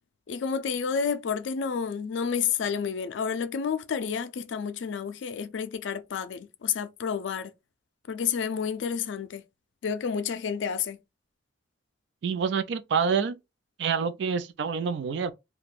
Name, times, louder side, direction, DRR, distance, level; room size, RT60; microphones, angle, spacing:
voice 1, 0.3-7.5 8.1-9.4 9.8-11.0, left 6 dB, 75° left, 0.4 m, -30 dB
voice 2, 12.2-13.4 13.8-15.3, right 6 dB, 65° right, 0.3 m, -27 dB
2.4 x 2.2 x 3.2 m
head